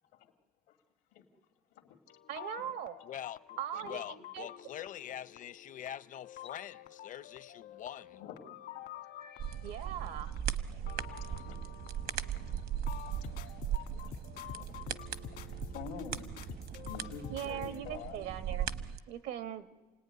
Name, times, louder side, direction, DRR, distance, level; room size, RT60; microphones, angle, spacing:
sound 1, 2.1-17.8, left 11 dB, 70° left, 1.6 m, -49 dB
voice 1, 2.3-3.0 3.6-4.5 9.6-10.3 17.3-18.7 19.1-19.7, right 10 dB, 85° right, 1.3 m, -40 dB
voice 2, 3.0-8.2, left 10 dB, 50° left, 0.7 m, -44 dB
voice 3, 8.1-9.0 10.0-10.9 11.2-11.6 13.2-13.3 13.9-14.1 14.5-14.8 15.3-16.4 16.9-18.3, left 7 dB, 90° left, 2.1 m, -48 dB
sound 2, 9.4-19.0, right 9 dB, 65° right, 1.0 m, -38 dB
29.0 x 18.5 x 9.6 m
cardioid pair, 110°, 17 cm